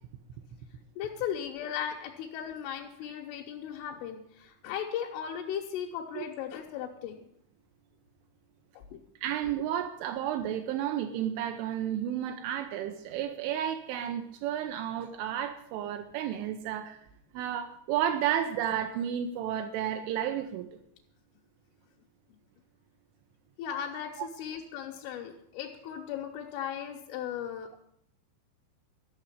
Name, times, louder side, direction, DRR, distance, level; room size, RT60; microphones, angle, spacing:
voice 1, 1.0-7.2 8.8-9.0 23.6-27.8, left 9 dB, 90° left, 0 dB, 3.6 m, -37 dB
voice 2, 9.2-17.0 17.3-20.7, right 10 dB, 80° right, 5 dB, 3.2 m, -32 dB
13.0 x 6.5 x 9.8 m, 0.73 s
omnidirectional pair, 5.5 m